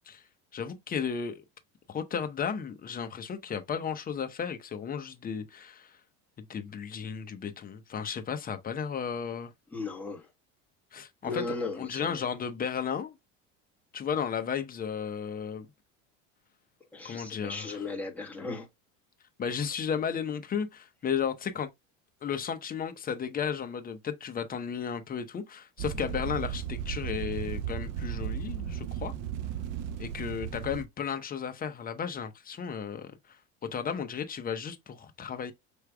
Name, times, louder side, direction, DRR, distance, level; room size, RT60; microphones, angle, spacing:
voice 1, 0.5-1.4 1.9-6.0 6.4-9.5 10.9-13.2 13.9-15.7 17.0-17.8 19.4-21.7 22.2-29.1 30.0-33.4 33.7-35.5, left 7 dB, 25° left, 0.7 m, -34 dB
voice 2, 9.7-10.3 11.2-12.2 16.9-18.7, left 3 dB, 5° left, 1.3 m, -36 dB
sound 1, 25.8-30.8, right 9 dB, 45° right, 0.5 m, -35 dB
6.0 x 3.2 x 2.2 m
supercardioid pair, 125°, 35 cm